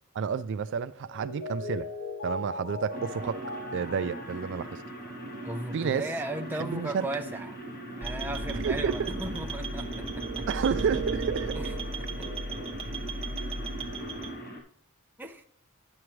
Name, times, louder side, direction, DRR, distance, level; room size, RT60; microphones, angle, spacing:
voice 1, 0.1-1.9 2.2-3.4 3.7-4.8 5.7-6.0 6.6-7.1 8.6-9.1 10.5-11.5, right 6 dB, 55° right, 0.3 m, -30 dB
Mallet percussion, 0.9-5.9, left 2 dB, 65° left, 2.3 m, -40 dB
sound 1, 2.9-14.6, right 1 dB, 45° left, 1.7 m, -41 dB
voice 2, 5.4-7.6 8.0-10.5 11.5-12.3 15.2-15.4, right 1 dB, 10° right, 0.7 m, -37 dB
sound 2, 8.0-14.3, right 2 dB, 25° right, 0.9 m, -34 dB
10.5 x 7.3 x 3.2 m
head